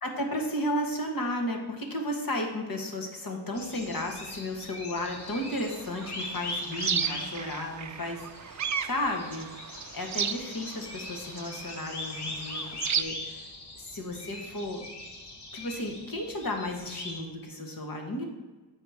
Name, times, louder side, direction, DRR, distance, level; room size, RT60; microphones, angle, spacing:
voice 1, 0.0-9.5 9.9-13.4 13.7-14.8 15.5-18.2, left 1 dB, 55° left, 3 dB, 1.5 m, -33 dB
sound 1, 3.5-17.2, left 2 dB, 70° left, 1.4 m, -41 dB
sound 2, 5.2-13.0, right 7 dB, 45° right, 0.5 m, -35 dB
7.6 x 5.0 x 4.9 m, 1.3 s
wide cardioid pair, 80°, 42 cm